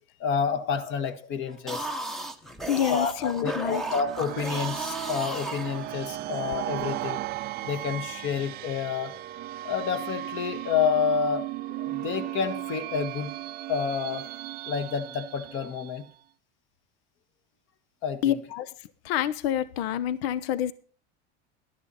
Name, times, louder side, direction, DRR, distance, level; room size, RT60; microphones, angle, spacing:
voice 1, 0.2-1.9 2.9-7.2 7.6-9.1 9.6-13.3 13.7-14.3 14.7-16.0 18.0-18.4, left 6 dB, 40° left, 1.5 m, -29 dB
sound 1, 1.5-6.3, right 2 dB, ahead, 0.8 m, -35 dB
voice 2, 2.7-3.8 18.2-18.7 19.0-20.7, left 10 dB, 80° left, 0.8 m, -27 dB
sound 2, 3.6-16.2, right 15 dB, 30° right, 0.5 m, -36 dB
12.5 x 10.5 x 4.1 m
supercardioid pair, 155°, 31 cm